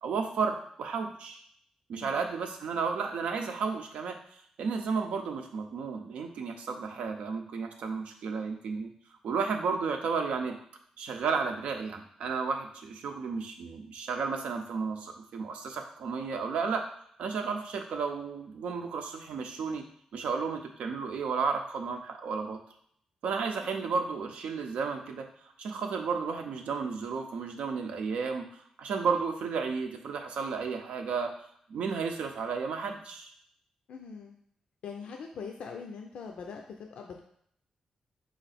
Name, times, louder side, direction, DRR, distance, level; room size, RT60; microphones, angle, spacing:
voice 1, 0.0-1.4 1.9-4.2 4.6-8.9 9.2-10.6 11.0-16.8 17.2-19.8 20.1-22.6 23.2-25.2 25.6-31.3 31.7-33.3, right 5 dB, 85° right, 4 dB, 0.6 m, -33 dB
voice 2, 1.9-2.3 23.6-23.9 33.9-34.3 34.8-37.2, left 5 dB, 80° left, 2 dB, 0.5 m, -42 dB
3.9 x 3.2 x 4.1 m, 0.66 s
cardioid pair, 105°, 2 cm